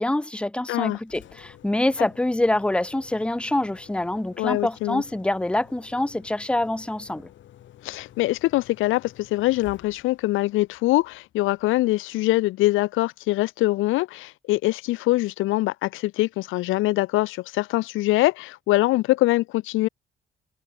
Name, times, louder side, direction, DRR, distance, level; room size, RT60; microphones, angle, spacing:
voice 1, 0.0-7.3, left 1 dB, 5° left, 0.9 m, -25 dB
voice 2, 0.7-1.0 4.4-5.0 7.8-19.9, left 18 dB, 85° left, 0.5 m, -23 dB
Engine, 0.9-11.9, left 12 dB, 70° left, 2.0 m, -51 dB
cardioid pair, 90°, 20 cm